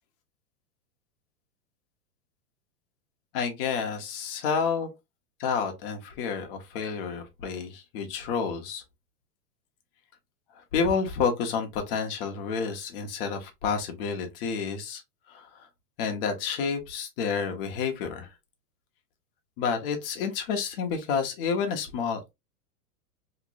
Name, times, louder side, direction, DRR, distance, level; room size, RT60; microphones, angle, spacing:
voice 1, 3.3-4.9 5.4-8.8 10.7-15.0 15.3-15.7 16.0-18.3 19.6-22.3, left 6 dB, 40° left, 0.9 m, -29 dB
3.0 x 2.9 x 2.6 m
supercardioid pair, 165°, 44 cm